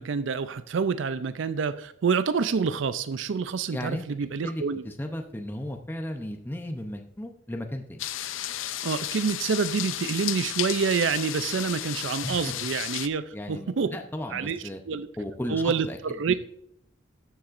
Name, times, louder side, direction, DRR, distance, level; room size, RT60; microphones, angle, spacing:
voice 1, 0.0-4.8 8.8-14.0 14.3-15.1 15.5-16.3, right 5 dB, 75° right, 13 dB, 0.4 m, -27 dB
voice 2, 3.7-4.1 4.4-8.1 12.2-12.5 13.3-14.8 15.2-16.0 16.3-16.4, left 1 dB, 10° left, 4 dB, 0.6 m, -35 dB
sound 1, 8.0-13.1, left 12 dB, 85° left, 0.5 m, -33 dB
14.0 x 7.1 x 2.5 m, 0.72 s
head